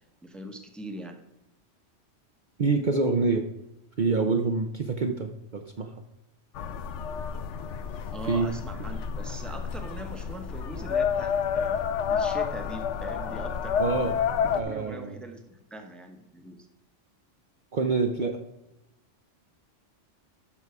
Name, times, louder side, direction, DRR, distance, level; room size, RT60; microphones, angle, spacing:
voice 1, 0.2-1.2 8.1-13.9 14.4-16.7, right 1 dB, ahead, 5 dB, 0.9 m, -41 dB
voice 2, 2.6-3.5 4.0-5.9 8.3-8.5 13.8-14.2 14.5-15.2 17.7-18.4, right 4 dB, 45° right, 4 dB, 0.7 m, -26 dB
sound 1, 6.5-14.6, left 7 dB, 75° left, 1.0 m, -30 dB
11.5 x 5.5 x 4.7 m, 0.90 s
omnidirectional pair, 1.3 m